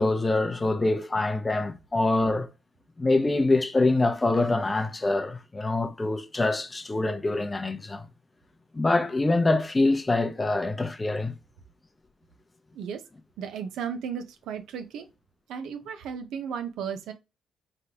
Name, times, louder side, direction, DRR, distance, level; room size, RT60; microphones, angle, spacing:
voice 1, 0.0-2.5 3.0-8.1 8.7-11.3, left 2 dB, 20° left, 0.6 m, -25 dB
voice 2, 13.4-15.1 15.5-17.1, right 7 dB, 85° right, 0.7 m, -34 dB
3.8 x 3.2 x 2.8 m
cardioid pair, 90°, 0 cm